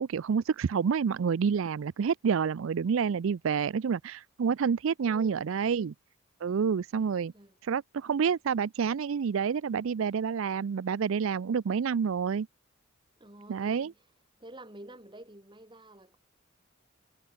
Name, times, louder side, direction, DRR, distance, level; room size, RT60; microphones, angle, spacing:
voice 1, 0.0-5.9 6.4-7.3 7.6-12.5 13.5-13.9, right 6 dB, 70° right, 0.4 m, -28 dB
voice 2, 5.0-5.5 7.3-7.6 13.2-14.0 14.4-16.2, right 1 dB, 20° right, 3.6 m, -49 dB
head